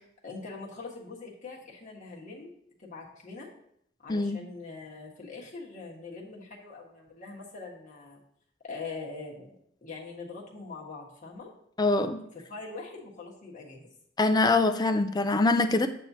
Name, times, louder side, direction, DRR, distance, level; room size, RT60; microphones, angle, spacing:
voice 1, 0.2-2.5 2.8-3.5 4.0-8.2 8.6-9.5 9.8-11.5 12.3-13.9, left 3 dB, 40° left, -3 dB, 1.5 m, -42 dB
voice 2, 11.8-12.2 14.2-15.9, left 2 dB, 20° left, 8 dB, 0.4 m, -24 dB
8.4 x 2.8 x 5.9 m, 0.70 s
head